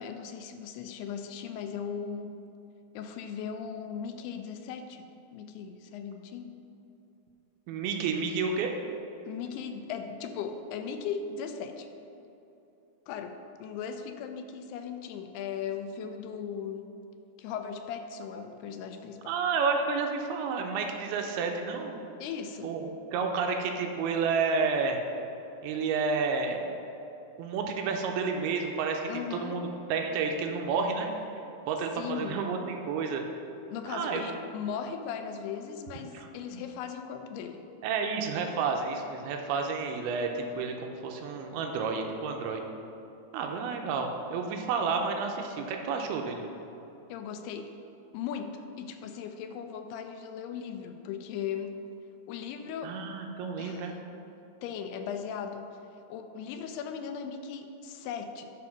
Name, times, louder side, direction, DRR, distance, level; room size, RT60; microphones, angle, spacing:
voice 1, 0.0-2.4 2.9-5.0 5.3-6.5 9.3-11.9 13.1-16.9 17.4-19.3 22.2-22.7 29.1-29.6 32.0-32.4 33.7-37.7 47.1-47.7 48.1-51.8 52.3-53.0 53.6-53.9 54.6-55.7 56.1-58.5, left 7 dB, 85° left, 7 dB, 2.6 m, -38 dB
voice 2, 7.7-8.7 19.3-22.0 22.6-25.0 25.6-26.6 27.4-31.3 31.6-33.2 33.9-34.2 36.1-36.6 37.8-42.6 43.3-46.4 52.8-54.0, right 5 dB, 85° right, 3 dB, 2.5 m, -30 dB
9.7 x 3.9 x 5.9 m, 3.0 s
omnidirectional pair, 4.6 m